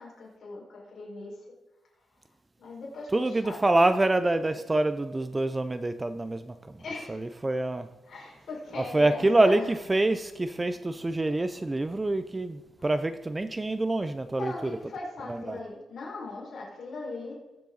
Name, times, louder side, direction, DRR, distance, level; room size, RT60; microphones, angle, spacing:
voice 1, 0.0-1.4 2.6-3.6 6.8-7.2 8.1-9.7 12.8-12.9 14.3-17.3, left 3 dB, 50° left, -4 dB, 4.9 m, -40 dB
voice 2, 3.1-6.6 7.1-7.9 8.8-14.8 15.3-15.6, right 2 dB, 15° right, 11 dB, 0.4 m, -26 dB
20.5 x 7.7 x 3.9 m, 1.2 s
wide cardioid pair, 155°, 0 cm